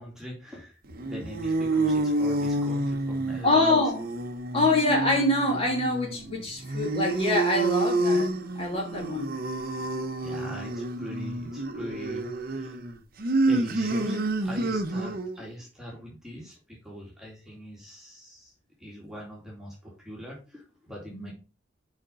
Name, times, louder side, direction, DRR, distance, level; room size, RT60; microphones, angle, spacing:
voice 1, 0.0-3.8 10.2-12.8 13.4-18.5 18.8-21.3, equal, 5° right, 2.5 m, -42 dB
sound 1, 0.9-15.4, right 2 dB, 50° right, 0.9 m, -29 dB
voice 2, 3.4-4.0 4.5-8.3 8.6-9.3 21.1-21.3, left 2 dB, 30° left, 2.9 m, -25 dB
6.5 x 5.2 x 5.4 m
head